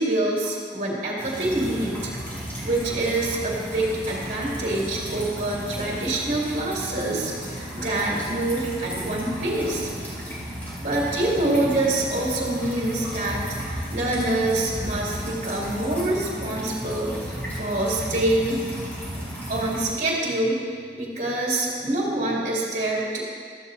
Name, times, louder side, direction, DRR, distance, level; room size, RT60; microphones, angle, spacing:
voice 1, 0.0-2.1 2.6-9.9 10.8-13.4 13.9-18.6 19.5-20.6 20.9-23.2, right 2 dB, 40° right, -4 dB, 2.5 m, -26 dB
sound 1, 1.2-19.9, equal, 10° left, 2.3 m, -34 dB
14.5 x 13.0 x 2.7 m, 2.1 s
head